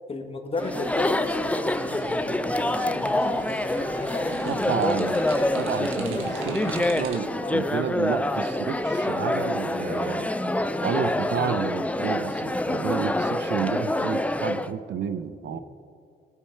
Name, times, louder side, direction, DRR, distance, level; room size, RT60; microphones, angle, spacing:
voice 1, 0.1-3.4 3.9-4.6 4.9-5.1 7.4-7.6 15.5-15.6, left 2 dB, 30° left, 5 dB, 1.5 m, -35 dB
Chatter, 0.6-14.7, left 1 dB, 5° left, 0.5 m, -26 dB
sound 1, 0.6-7.2, right 4 dB, 80° right, 1.5 m, -40 dB
voice 2, 4.4-5.3 5.6-10.3 10.8-15.6, right 8 dB, 65° right, 11 dB, 0.7 m, -31 dB
sound 2, 6.0-7.9, right 3 dB, 40° right, 1.5 m, -42 dB
18.0 x 8.9 x 4.6 m, 2.4 s
cardioid pair, 90°, 20 cm